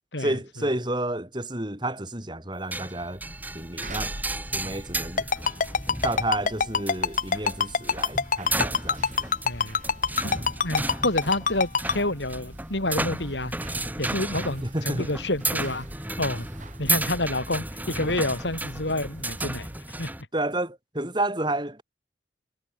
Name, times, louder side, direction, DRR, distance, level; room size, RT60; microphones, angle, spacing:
voice 1, 0.2-3.2 3.5-4.1 4.5-5.3 6.0-9.3 14.6-15.1 20.3-21.8, right 1 dB, 25° right, 5.6 m, -30 dB
sound 1, 2.7-20.2, right 2 dB, 10° right, 3.9 m, -33 dB
sound 2, 3.2-19.8, right 1 dB, 40° right, 5.0 m, -44 dB
Ringtone, 5.2-11.9, left 5 dB, 45° left, 0.8 m, -23 dB
voice 2, 9.4-9.8 10.6-13.5 14.0-15.9 16.2-16.5 16.8-19.7 20.0-20.1, left 2 dB, 80° left, 7.5 m, -28 dB
head